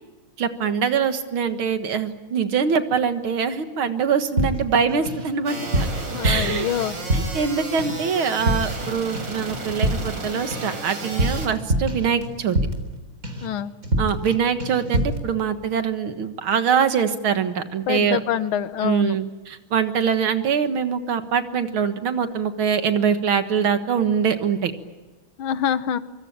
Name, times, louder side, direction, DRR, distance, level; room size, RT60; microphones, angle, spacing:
voice 1, 0.4-5.9 6.2-6.7 7.1-12.6 14.0-18.2 18.8-24.7, right 7 dB, 85° right, 8 dB, 2.4 m, -23 dB
sound 1, 4.4-5.3 5.6-7.5 7.8-8.1 8.4-8.9 9.1-13.0 13.2-13.5 13.8-14.3 14.6-15.2, right 1 dB, 40° right, 4.1 m, -25 dB
sound 2, 5.5-11.5, right 3 dB, 60° right, 4.2 m, -34 dB
voice 2, 6.1-7.0 13.4-13.7 17.9-19.2 25.4-26.0, left 9 dB, 85° left, 13 dB, 1.9 m, -25 dB
25.0 x 25.0 x 8.7 m, 1.2 s
omnidirectional pair, 2.2 m